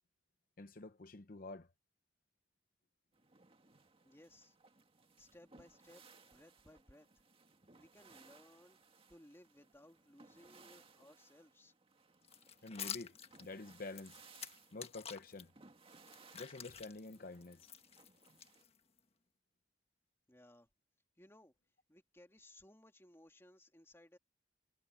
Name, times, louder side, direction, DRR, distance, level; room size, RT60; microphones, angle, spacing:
voice 1, 0.6-1.7 12.6-13.1 13.4-14.2 14.7-15.5 16.3-17.7, left 3 dB, 55° left, 0.8 m, -48 dB
sound 1, 3.1-18.6, right 4 dB, 35° right, 2.0 m, -64 dB
voice 2, 4.0-4.6 5.2-7.1 7.8-8.8 9.1-11.7 20.3-20.7 21.2-21.5 21.9-24.2, left 1 dB, 15° left, 2.4 m, -62 dB
sound 2, 12.2-15.4 15.9-19.0, left 8 dB, 35° left, 1.5 m, -49 dB
head